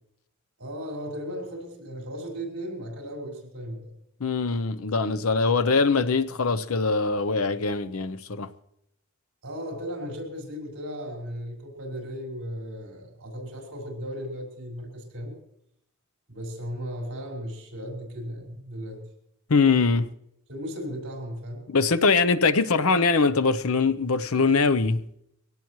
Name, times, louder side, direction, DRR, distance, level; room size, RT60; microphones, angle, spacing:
voice 1, 0.6-3.9 9.4-15.4 16.3-19.0 20.5-21.7, equal, 60° right, 5.6 m, -36 dB
voice 2, 4.2-8.5 19.5-20.1 21.7-25.0, left 4 dB, 70° left, 0.8 m, -22 dB
23.0 x 17.5 x 3.1 m
head